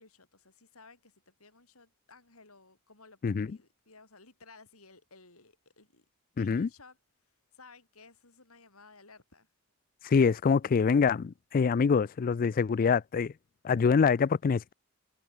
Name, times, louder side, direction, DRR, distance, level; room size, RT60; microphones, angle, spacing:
voice 1, 0.0-3.2 3.5-6.0 6.4-7.0 7.5-9.5, left 3 dB, 80° left, 7.8 m, -56 dB
voice 2, 6.4-6.7 10.0-13.3 13.6-14.7, left 5 dB, 40° left, 0.3 m, -25 dB
head